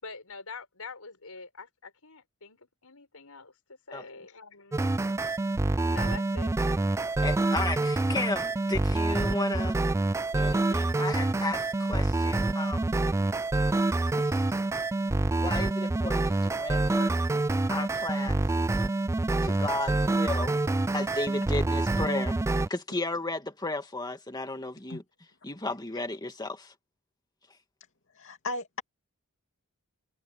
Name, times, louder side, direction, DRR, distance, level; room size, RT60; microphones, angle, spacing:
voice 1, 0.0-5.0 5.8-6.5 6.9-7.1, left 4 dB, 80° left, 5.2 m, -45 dB
sound 1, 4.7-22.7, right 2 dB, 15° right, 0.3 m, -27 dB
voice 2, 7.0-9.8 10.3-12.9 15.4-17.1 17.7-18.4 19.4-20.5 20.9-22.4 22.7-25.0 25.4-26.7, left 2 dB, 20° left, 2.4 m, -34 dB
voice 3, 13.8-14.5 24.9-25.0 28.1-28.8, left 2 dB, 60° left, 2.6 m, -38 dB
head